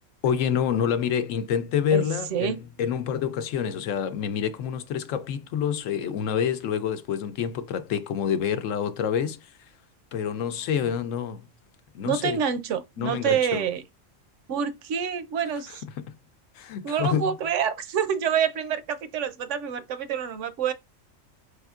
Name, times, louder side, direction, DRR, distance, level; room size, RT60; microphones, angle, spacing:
voice 1, 0.2-9.5 10.1-11.5 11.9-12.4 13.0-13.6 15.7-16.1 16.5-17.3, left 8 dB, 80° left, 1.0 m, -27 dB
voice 2, 12.1-13.8 14.5-15.8 16.8-20.7, right 8 dB, 70° right, 0.9 m, -27 dB
4.4 x 3.4 x 2.4 m
omnidirectional pair, 1.3 m